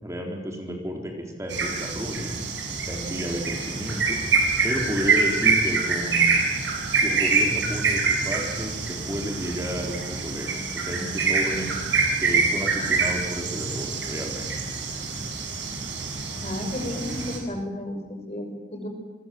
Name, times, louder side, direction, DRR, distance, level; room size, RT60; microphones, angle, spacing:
voice 1, 0.0-2.3 2.9-4.2 4.6-6.4 6.9-10.6 10.8-11.8 12.2-14.5, equal, 15° right, 1 dB, 3.9 m, -32 dB
sound 1, 1.5-17.4, right 4 dB, 75° right, 7.4 m, -25 dB
voice 2, 16.4-18.9, left 1 dB, 35° left, 5 dB, 5.5 m, -33 dB
28.5 x 25.0 x 7.7 m, 1.2 s
head